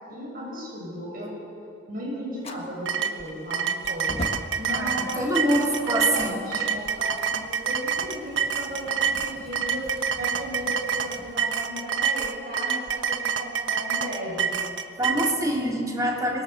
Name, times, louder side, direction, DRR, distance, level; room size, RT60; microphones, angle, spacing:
voice 1, 0.0-1.4 1.9-4.2 4.6-5.6 5.9-14.5, equal, 50° right, -3 dB, 6.9 m, -35 dB
Fire, 2.4-11.4, left 1 dB, 35° left, 1.6 m, -43 dB
sound 1, 2.9-15.4, right 7 dB, 80° right, 1.1 m, -27 dB
voice 2, 4.7-6.7 15.0-16.4, right 1 dB, 20° right, -2 dB, 3.3 m, -25 dB
24.0 x 21.5 x 6.9 m, 2.7 s
head